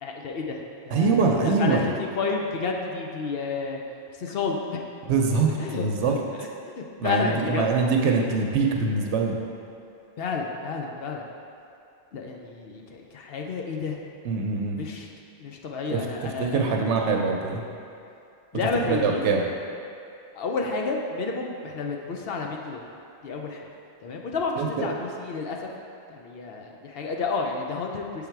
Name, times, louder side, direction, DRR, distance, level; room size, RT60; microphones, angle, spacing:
voice 1, 0.0-3.8 4.2-4.6 5.5-7.6 10.2-11.3 12.1-14.0 14.7-15.1 15.4-16.7 18.5-19.2 20.3-22.9 23.2-23.7 24.0-25.7 26.1-28.3, left 4 dB, 65° left, 1 dB, 0.8 m, -31 dB
voice 2, 0.9-1.8 5.1-5.5 5.7-6.1 7.0-9.3 14.3-14.8 15.9-16.0 16.4-17.6 18.9-19.4 24.6-24.9, right 4 dB, 85° right, 1 dB, 0.9 m, -23 dB
7.1 x 3.6 x 4.5 m, 2.6 s
omnidirectional pair, 1.1 m